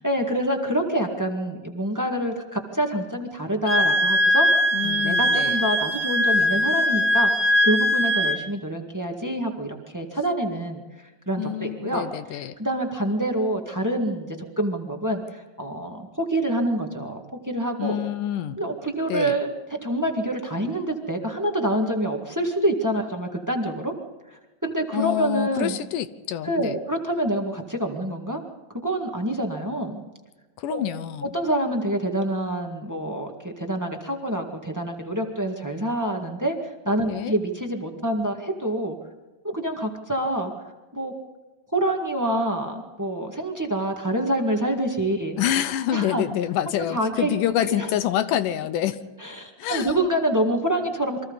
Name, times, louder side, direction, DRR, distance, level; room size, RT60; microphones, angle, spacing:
voice 1, 0.0-4.5 4.8-10.8 11.2-12.0 12.3-18.0 18.6-23.9 24.3-25.8 26.4-28.4 28.7-30.0 30.7-30.8 31.3-39.0 39.4-40.5 40.9-41.1 41.7-45.4 45.9-46.2 46.9-47.3 47.8-47.9 49.2-51.2, right 1 dB, 10° right, 3 dB, 0.8 m, -26 dB
Wind instrument woodwind instrument, 3.7-8.4, equal, 35° right, 1.7 m, -21 dB
voice 2, 4.7-5.6 11.4-12.5 17.8-18.6 19.1-19.3 24.9-26.8 30.6-31.3 37.1-37.3 45.4-49.0 49.6-50.0, left 11 dB, 80° left, 12 dB, 2.4 m, -27 dB
28.0 x 24.0 x 4.1 m, 1.2 s
omnidirectional pair, 3.8 m